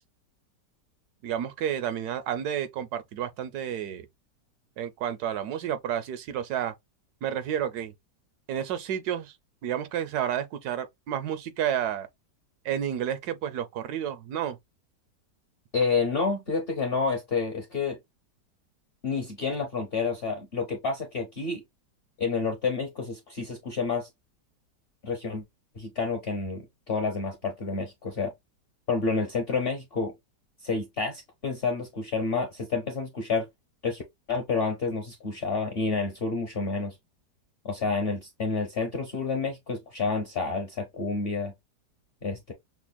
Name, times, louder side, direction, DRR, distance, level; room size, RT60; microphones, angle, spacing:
voice 1, 1.2-4.1 4.8-6.7 7.2-7.9 8.5-9.3 9.6-12.1 12.6-14.6, right 9 dB, 75° right, 1.0 m, -30 dB
voice 2, 15.7-18.0 19.0-21.6 22.2-24.1 25.0-25.4 25.8-28.3 28.9-30.1 30.6-33.5 33.8-34.0 34.3-37.0 37.6-41.5 42.2-42.5, left 4 dB, 50° left, 0.7 m, -29 dB
5.9 x 2.0 x 2.3 m
omnidirectional pair, 1.9 m